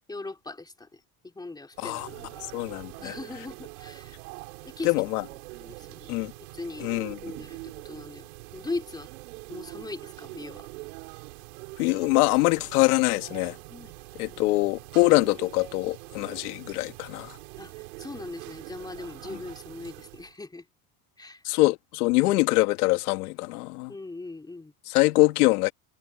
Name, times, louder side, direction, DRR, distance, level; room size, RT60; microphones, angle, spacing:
voice 1, 0.1-2.5 3.0-4.2 4.6-4.9 5.6-6.1 6.5-6.9 7.2-9.1 9.5-10.7 13.7-13.9 14.2-14.6 17.6-17.7 18.0-20.7 21.2-21.4 23.9-24.7, left 3 dB, 10° left, 3.0 m, -39 dB
sound 1, 1.7-20.4, right 24 dB, 85° right, 5.4 m, -44 dB
voice 2, 1.8-2.1 2.5-3.2 4.8-5.2 6.1-6.3 6.8-7.2 11.8-13.6 14.2-17.4 21.4-23.9 24.9-25.7, left 21 dB, 90° left, 2.0 m, -24 dB
supercardioid pair, 140°, 44 cm